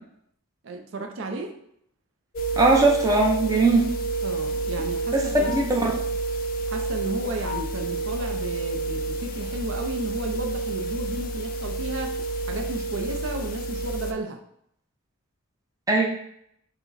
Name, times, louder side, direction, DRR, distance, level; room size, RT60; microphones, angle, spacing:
voice 1, 0.6-1.6 4.2-5.5 6.7-14.4, right 2 dB, 65° right, 3 dB, 0.5 m, -33 dB
sound 1, 2.4-14.1, right 2 dB, 40° left, 0.4 m, -29 dB
voice 2, 2.6-3.8 5.1-5.2 5.5-5.9 15.9-16.1, right 3 dB, 15° right, -1 dB, 0.6 m, -19 dB
4.7 x 2.1 x 4.0 m, 0.71 s
head